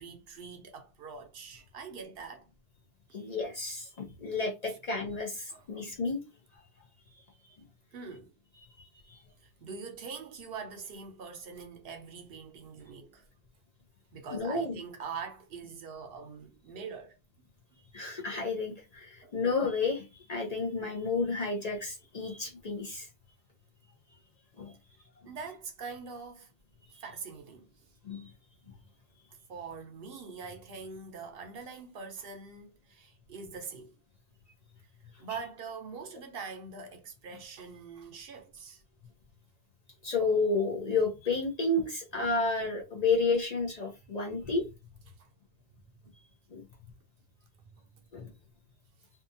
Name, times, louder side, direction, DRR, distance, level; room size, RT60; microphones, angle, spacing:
voice 1, 0.0-2.5 3.1-3.4 4.7-4.8 5.5-5.8 7.9-8.3 9.4-13.2 14.1-17.2 19.2-19.3 25.2-26.5 26.9-27.9 29.5-33.9 35.2-38.8 45.1-45.3 45.8-46.0 47.6-47.9, right 5 dB, 65° right, 0.8 m, -44 dB
voice 2, 3.1-6.2 8.8-9.2 14.3-14.8 17.9-23.1 24.6-24.7 28.0-28.3 35.3-35.4 40.0-44.7 46.5-46.6 48.1-48.3, left 3 dB, 45° left, 0.6 m, -31 dB
2.7 x 2.3 x 2.6 m
omnidirectional pair, 1.1 m